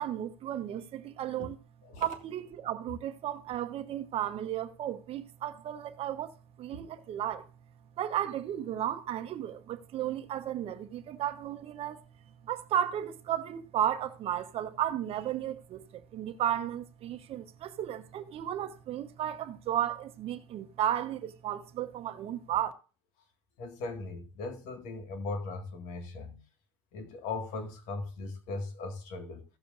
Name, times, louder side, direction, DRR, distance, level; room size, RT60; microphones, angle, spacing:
voice 1, 0.0-1.6 2.0-6.3 6.6-7.5 8.0-12.0 12.4-22.7, right 11 dB, 45° right, 0.9 m, -34 dB
voice 2, 23.6-26.4 26.9-29.4, left 3 dB, 65° left, 1.8 m, -38 dB
16.5 x 6.9 x 2.5 m
supercardioid pair, 100°, 13 cm